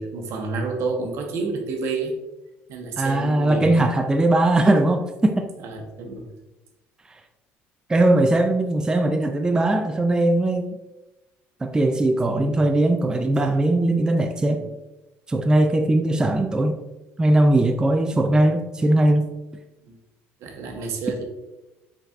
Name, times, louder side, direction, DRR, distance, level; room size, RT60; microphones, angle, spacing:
voice 1, 0.0-2.2 2.7-3.9 5.6-6.3 12.3-12.6 14.4-14.7 18.1-18.3 19.9-20.0 20.4-21.2, right 3 dB, 70° right, 3 dB, 0.9 m, -30 dB
voice 2, 3.0-5.5 7.9-10.8 11.6-14.7 15.3-16.8 17.2-19.3, right 1 dB, 15° right, 5 dB, 0.3 m, -20 dB
5.3 x 4.0 x 2.3 m, 1.0 s
supercardioid pair, 90°, 5 cm